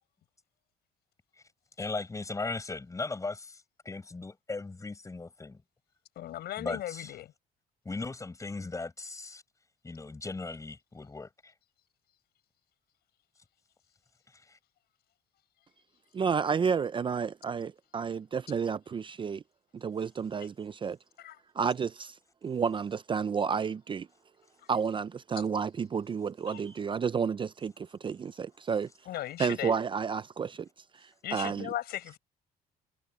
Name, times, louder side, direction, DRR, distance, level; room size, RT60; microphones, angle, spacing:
voice 1, 1.8-5.6 6.6-7.1 7.8-9.4 9.8-11.5 14.5-14.6, left 3 dB, 20° left, 6.7 m, -38 dB
voice 2, 6.2-7.3 21.2-21.4 26.5-26.6 29.1-29.8 31.2-32.2, left 13 dB, 70° left, 7.2 m, -37 dB
voice 3, 16.1-19.4 19.7-21.0 21.6-22.1 22.4-24.1 24.7-28.9 29.4-30.7 31.3-31.7, right 6 dB, 30° right, 0.5 m, -31 dB
cardioid pair, 110°, 17 cm